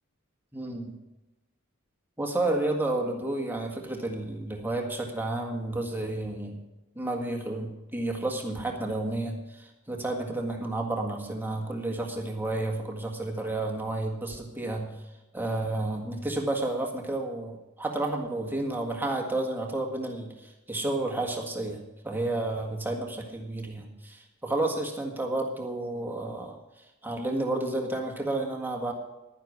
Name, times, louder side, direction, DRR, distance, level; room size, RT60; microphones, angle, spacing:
voice 1, 0.5-0.9 2.2-6.6 6.9-14.9 15.3-26.6 27.0-28.9, right 2 dB, 10° right, 1 dB, 1.7 m, -31 dB
11.0 x 10.5 x 6.1 m, 0.99 s
head